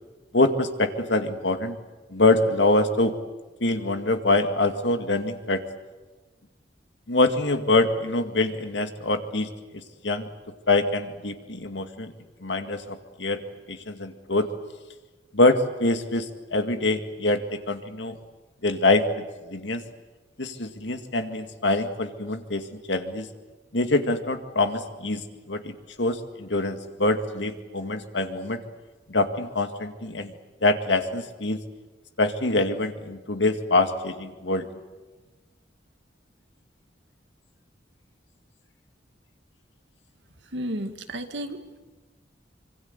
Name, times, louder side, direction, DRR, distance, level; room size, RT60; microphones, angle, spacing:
voice 1, 0.3-1.8 2.1-3.1 3.6-5.6 7.1-9.5 10.0-10.3 10.7-12.1 12.4-13.4 13.7-14.5 15.3-18.2 18.6-19.0 19.5-19.8 20.4-23.3 23.7-28.6 29.1-30.3 30.6-31.6 32.2-34.6, left 2 dB, 75° left, 7 dB, 2.1 m, -24 dB
voice 2, 40.5-41.8, equal, 75° right, 7 dB, 2.0 m, -33 dB
25.5 x 24.5 x 8.2 m, 1.2 s
head